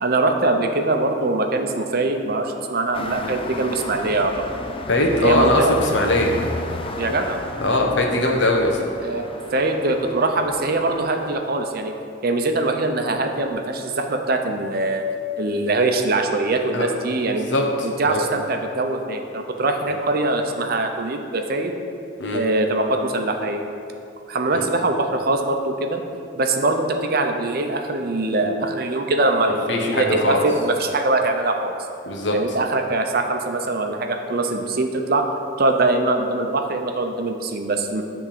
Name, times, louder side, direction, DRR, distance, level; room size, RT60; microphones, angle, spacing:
voice 1, 0.0-4.5 5.2-5.7 7.0-7.4 9.0-9.2 9.5-11.9 12.2-15.1 15.4-17.5 17.8-21.7 22.3-23.7 24.3-26.0 26.4-31.7 32.3-35.3 35.6-38.0, right 2 dB, 55° right, 4 dB, 0.7 m, -22 dB
sound 1, 2.9-11.3, left 2 dB, 30° left, 0.5 m, -33 dB
voice 2, 4.9-6.3 7.6-8.8 16.7-16.9 17.5-18.2 19.9-20.0 22.2-22.4 24.5-24.6 29.7-30.4 32.0-32.4, left 1 dB, 70° left, 1 dB, 1.1 m, -20 dB
10.0 x 3.6 x 6.7 m, 2.5 s
head